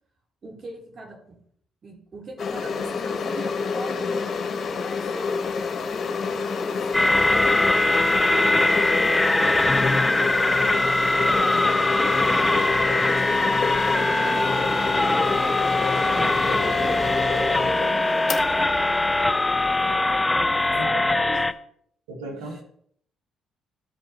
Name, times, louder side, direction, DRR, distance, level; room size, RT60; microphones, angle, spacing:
voice 1, 0.4-1.4 1.8-5.3 5.9-7.7 8.7-12.5 13.2-15.4 16.1-18.4 18.7-19.5 19.8-21.5 22.4-22.6, right 2 dB, 45° right, -2 dB, 3.7 m, -41 dB
sound 1, 2.4-20.9, left 5 dB, 50° left, 1.2 m, -29 dB
sound 2, 6.9-21.5, left 2 dB, 15° left, 0.5 m, -22 dB
Musical instrument, 9.7-18.2, left 2 dB, 30° right, 2.4 m, -34 dB
voice 2, 20.7-21.2 22.1-22.6, right 1 dB, 80° right, 0 dB, 1.8 m, -37 dB
13.5 x 5.2 x 3.0 m, 0.66 s
hypercardioid pair, 50°, 0 cm